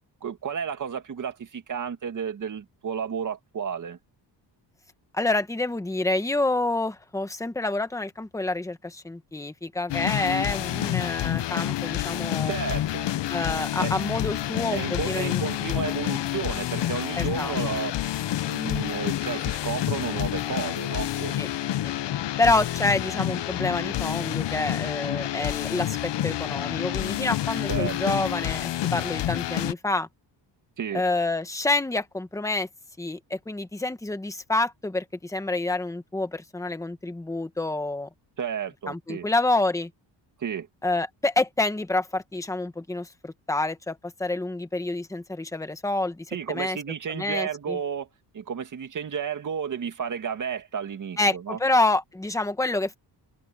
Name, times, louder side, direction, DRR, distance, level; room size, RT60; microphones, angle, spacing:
voice 1, 0.2-4.0 12.5-13.1 13.8-13.9 14.7-17.9 18.5-21.4 27.7-28.2 30.8-31.0 38.4-39.3 40.4-40.7 46.3-48.1 48.3-51.6, right 7 dB, 45° right, 2.2 m, -32 dB
voice 2, 5.1-12.5 13.3-16.0 17.2-17.6 21.4-21.5 21.8-21.9 22.4-30.1 30.9-32.7 33.0-38.1 38.9-39.9 40.8-46.8 47.1-47.8 51.2-53.0, left 2 dB, 5° left, 1.3 m, -28 dB
sound 1, 9.9-29.7, left 13 dB, 75° left, 0.9 m, -28 dB
wide cardioid pair, 155°, 43 cm